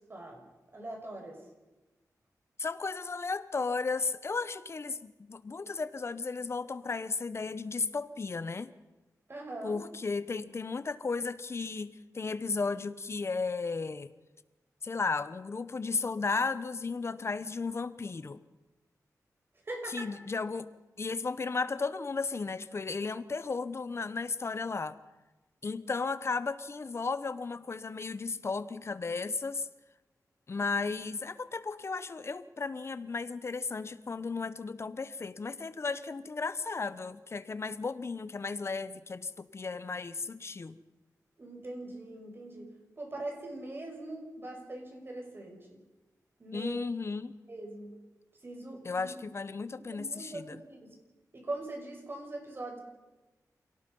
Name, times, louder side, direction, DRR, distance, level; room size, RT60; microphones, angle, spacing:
voice 1, 0.1-0.5 0.7-1.4 9.3-9.8 19.7-20.1 41.4-45.8 46.4-46.8 47.5-48.0 48.4-49.2 49.9-50.9 51.3-52.8, right 2 dB, 35° right, 1 dB, 6.1 m, -41 dB
voice 2, 2.6-8.7 9.6-14.1 14.8-18.4 19.9-25.0 25.6-29.7 30.5-40.8 46.5-47.3 48.8-50.6, left 4 dB, 45° left, 14 dB, 1.0 m, -34 dB
27.5 x 18.0 x 5.5 m, 1.1 s
wide cardioid pair, 110°, 6 cm